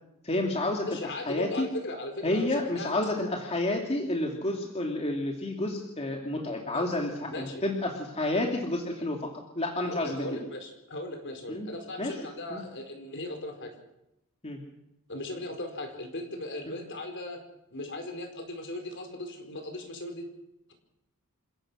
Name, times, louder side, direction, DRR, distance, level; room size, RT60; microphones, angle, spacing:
voice 1, 0.2-0.9 1.2-1.7 2.2-10.3 11.5-11.7 12.0-12.2 12.5-12.6 14.4-14.6 16.7-16.8, left 1 dB, 30° left, 1 dB, 2.6 m, -30 dB
voice 2, 0.9-2.9 6.7-6.9 7.3-7.6 9.8-13.7 15.1-17.4 17.7-20.3, left 1 dB, 55° left, 5 dB, 4.7 m, -38 dB
28.0 x 16.5 x 6.3 m, 0.89 s
head